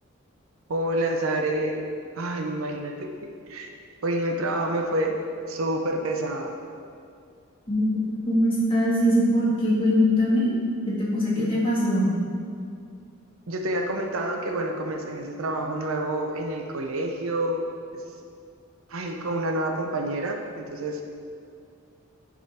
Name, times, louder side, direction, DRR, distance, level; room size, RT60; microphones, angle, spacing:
voice 1, 0.7-1.9 2.2-3.7 4.0-5.2 5.5-6.6 11.4-11.6 13.5-17.7 17.9-18.0 18.9-21.0, right 1 dB, 75° right, 3 dB, 0.7 m, -28 dB
voice 2, 8.3-10.5 10.9-12.1, equal, 25° left, -6 dB, 1.6 m, -22 dB
10.5 x 3.7 x 4.2 m, 2.4 s
head